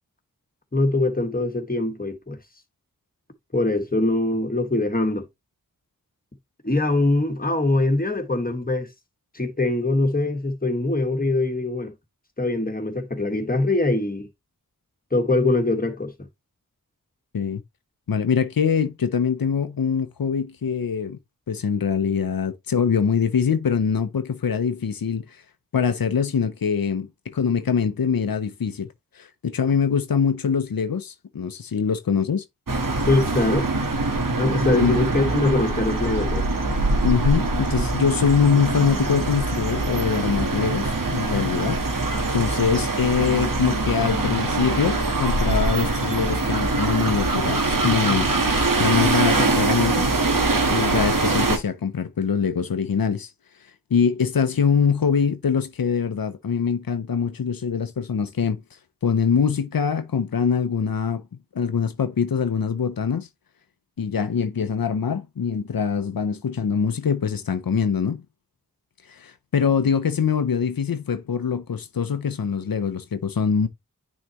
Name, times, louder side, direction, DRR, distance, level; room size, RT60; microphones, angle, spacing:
voice 1, 0.7-2.4 3.5-5.3 6.6-8.9 9.3-11.9 12.4-14.3 15.1-16.1 33.1-33.7 34.3-36.4, left 2 dB, 25° left, 1.6 m, -23 dB
voice 2, 18.1-21.2 21.5-25.4 25.7-28.9 29.1-32.4 34.8-34.9 37.0-50.1 50.7-53.3 53.9-58.6 59.0-61.2 61.5-63.3 64.0-68.2 69.1-73.7, left 6 dB, 90° left, 0.7 m, -23 dB
sound 1, 32.7-51.6, right 2 dB, 70° right, 1.5 m, -23 dB
9.7 x 4.0 x 3.0 m
wide cardioid pair, 65°, 34 cm